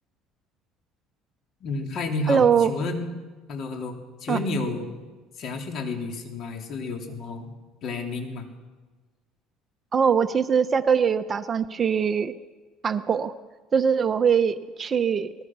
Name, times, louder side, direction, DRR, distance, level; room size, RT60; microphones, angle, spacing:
voice 1, 1.6-3.1 3.5-5.0 5.4-7.5 7.8-8.5, left 3 dB, 50° left, 3 dB, 3.5 m, -31 dB
voice 2, 2.3-2.7 4.3-4.4 9.9-12.3 12.8-13.3 13.7-15.3, right 7 dB, 30° right, 11 dB, 0.8 m, -22 dB
22.0 x 20.0 x 6.3 m, 1.3 s
cardioid pair, 125°, 0 cm